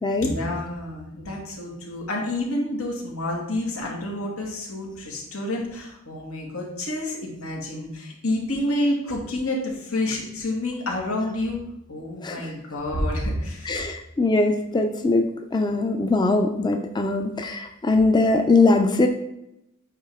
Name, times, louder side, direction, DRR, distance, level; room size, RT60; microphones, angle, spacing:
voice 1, 0.2-11.6 11.9-13.9, left 1 dB, 90° left, -1 dB, 2.2 m, -29 dB
voice 2, 13.6-19.1, left 2 dB, 20° left, 5 dB, 0.5 m, -21 dB
8.6 x 4.8 x 3.6 m, 0.86 s
head